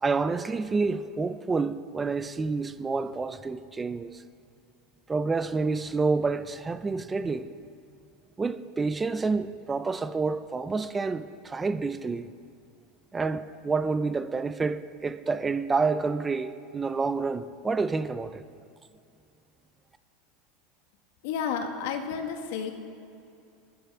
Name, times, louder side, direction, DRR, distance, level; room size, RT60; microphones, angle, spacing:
voice 1, 0.0-4.2 5.1-7.5 8.4-12.3 13.1-18.4, right 4 dB, 15° right, 0.6 m, -28 dB
voice 2, 21.2-22.7, left 7 dB, 70° left, 2.0 m, -31 dB
20.0 x 11.5 x 5.7 m
supercardioid pair, 140°, 0 cm